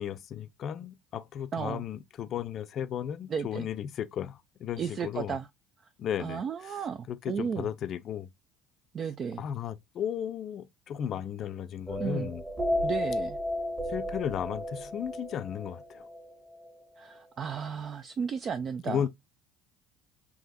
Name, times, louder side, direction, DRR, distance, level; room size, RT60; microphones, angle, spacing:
voice 1, 0.0-5.4 6.0-6.8 7.1-8.3 9.4-12.4 13.9-16.1 18.8-19.1, left 9 dB, 50° left, 0.5 m, -35 dB
voice 2, 1.5-1.8 3.3-3.7 4.8-5.5 6.2-7.7 8.9-9.4 12.0-12.3 12.8-13.4 17.0-19.1, right 7 dB, 45° right, 0.4 m, -34 dB
sound 1, 11.9-16.7, left 1 dB, 25° right, 1.6 m, -33 dB
3.8 x 2.8 x 2.7 m
hypercardioid pair, 75°, 0 cm